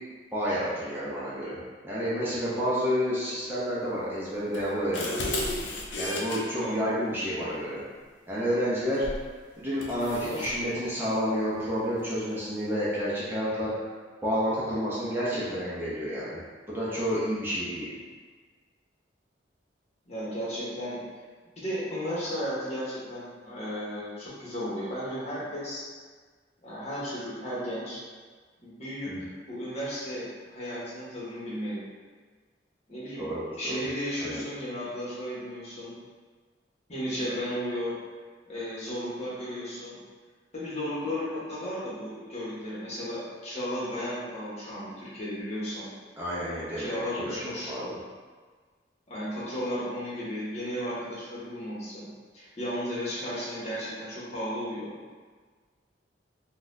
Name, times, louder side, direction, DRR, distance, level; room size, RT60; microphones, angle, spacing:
voice 1, 0.3-5.2 5.9-7.8 8.3-9.0 9.6-13.7 14.2-16.4 16.7-17.9 29.1-29.2 33.2-33.8 34.2-34.4 46.2-48.0, equal, 10° right, -9 dB, 0.6 m, -30 dB
sound 1, 4.5-6.4 9.0-9.3 9.8-10.5, left 1 dB, 85° left, 0.5 m, -33 dB
voice 2, 20.1-21.0 21.6-25.8 26.6-28.0 28.6-31.8 32.9-33.3 33.6-35.9 36.9-37.9 38.5-40.0 40.5-45.8 46.8-47.7 49.1-52.1 52.3-54.9, equal, 40° left, -8 dB, 1.1 m, -34 dB
4.0 x 2.3 x 2.6 m, 1.5 s
head